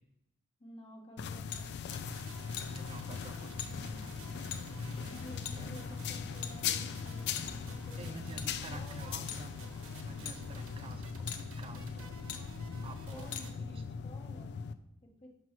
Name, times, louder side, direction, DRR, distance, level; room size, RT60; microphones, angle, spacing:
voice 1, 0.6-1.9 5.0-9.2 13.1-14.5 15.2-15.3, left 1 dB, 25° left, 0 dB, 1.1 m, -53 dB
sound 1, 1.2-14.7, left 6 dB, 50° left, 0.3 m, -40 dB
sound 2, 1.5-1.6 2.6-2.8 3.6-3.7 4.5-4.6 5.4-5.6 6.4-6.9 7.4-7.7 8.4-8.5 9.3-9.5 10.2-10.4 11.3-11.4 12.3-12.4 13.3-13.5, left 9 dB, 85° left, 0.6 m, -41 dB
sound 3, 1.9-13.6, right 3 dB, 60° right, 1.0 m, -52 dB
voice 2, 2.7-5.7 8.0-9.5 9.9-12.1 12.8-13.8, right 2 dB, 25° right, 8 dB, 0.4 m, -49 dB
6.0 x 3.0 x 5.7 m, 0.84 s
head